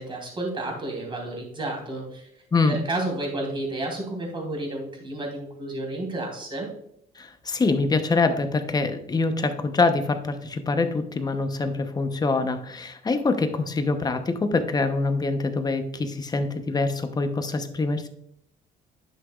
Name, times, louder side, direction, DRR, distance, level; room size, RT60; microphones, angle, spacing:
voice 1, 0.0-2.3 2.7-6.7, right 2 dB, 30° right, 0 dB, 3.1 m, -31 dB
voice 2, 7.2-18.1, left 3 dB, 25° left, 8 dB, 0.9 m, -25 dB
10.5 x 6.0 x 2.4 m, 0.74 s
cardioid pair, 110°, 17 cm